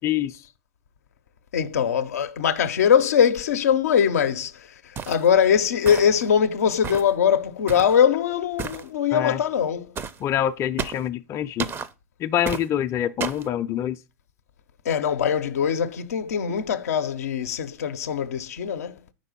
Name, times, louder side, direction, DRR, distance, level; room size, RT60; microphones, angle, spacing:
voice 1, 0.0-0.4 9.1-9.4 10.2-11.7 12.2-14.0, left 11 dB, 35° left, 0.4 m, -25 dB
voice 2, 1.5-9.9 14.8-19.0, left 8 dB, 85° left, 0.5 m, -22 dB
sound 1, 5.0-5.3 5.9-6.3 6.8-7.1 7.7-8.0 8.6-8.9 10.0-10.2 10.8-11.1 11.6-11.9 12.5-12.7 13.2-13.5, right 6 dB, 30° right, 0.5 m, -32 dB
5.2 x 4.0 x 5.1 m
hypercardioid pair, 100°, 8 cm